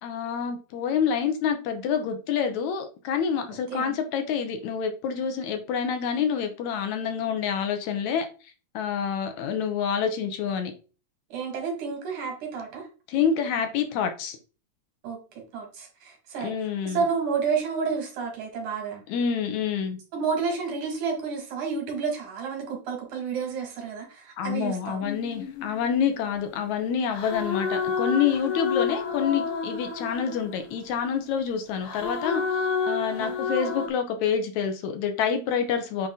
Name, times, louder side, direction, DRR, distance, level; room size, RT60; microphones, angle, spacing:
voice 1, 0.0-8.3 8.7-10.7 13.1-14.4 16.4-17.0 19.1-20.0 24.4-36.1, left 7 dB, 80° left, 2.3 m, -27 dB
voice 2, 11.3-12.9 15.0-15.2 15.5-16.5 16.8-19.0 20.1-25.0 33.2-33.4, right 5 dB, 85° right, 3.4 m, -30 dB
sound 1, 25.0-26.5 27.1-31.0 31.8-33.9, left 5 dB, 65° left, 1.5 m, -30 dB
8.4 x 2.9 x 3.8 m
omnidirectional pair, 3.4 m